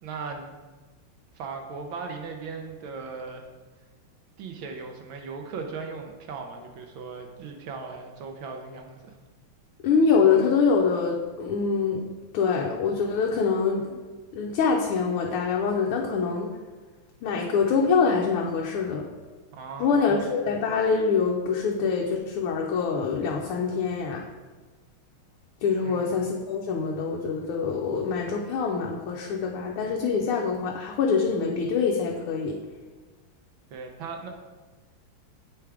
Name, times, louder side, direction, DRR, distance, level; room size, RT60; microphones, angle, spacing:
voice 1, 0.0-0.5 1.3-3.4 4.4-9.2 19.5-20.2 25.8-26.2 33.7-34.3, right 4 dB, 75° right, 3 dB, 1.4 m, -38 dB
voice 2, 9.8-12.1 12.3-14.0 14.3-16.5 17.2-19.0 19.8-24.2 25.6-32.6, left 5 dB, 90° left, 0 dB, 1.6 m, -25 dB
7.8 x 3.5 x 4.7 m, 1.3 s
omnidirectional pair, 2.3 m